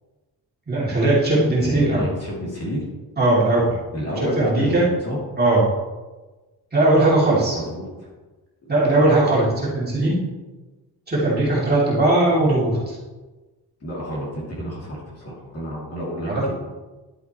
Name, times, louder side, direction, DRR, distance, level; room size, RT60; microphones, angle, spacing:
voice 1, 0.7-2.1 3.2-3.7 4.4-4.9 5.4-5.6 6.7-7.6 8.7-10.2 11.1-13.0 16.3-16.4, right 2 dB, 25° right, -7 dB, 2.7 m, -19 dB
voice 2, 1.6-2.8 3.9-5.2 7.5-8.1 13.8-16.5, equal, 40° left, -4 dB, 2.7 m, -30 dB
11.0 x 7.9 x 3.0 m, 1.2 s
wide cardioid pair, 155°, 39 cm